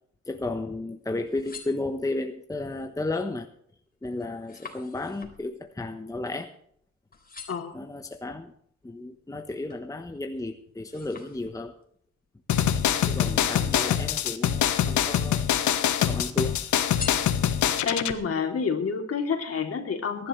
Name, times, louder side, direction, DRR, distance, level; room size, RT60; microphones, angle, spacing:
voice 1, 0.2-3.5 4.0-6.5 7.7-8.5 8.8-11.8 13.1-15.5 16.1-16.6, left 2 dB, 10° left, 6 dB, 1.2 m, -33 dB
sound 1, 1.2-2.4 3.0-3.4 3.7-6.8 7.1-7.8 8.4-9.9 10.3-11.9 12.8-13.9 14.5-15.3 15.6-16.3 16.8-17.9 18.4-18.5, left 5 dB, 30° left, 3.6 m, -45 dB
sound 2, 12.5-18.1, left 9 dB, 75° left, 1.4 m, -24 dB
voice 2, 17.8-20.3, left 5 dB, 50° left, 3 dB, 3.3 m, -28 dB
22.5 x 11.5 x 3.3 m, 0.66 s
cardioid pair, 90°, 30 cm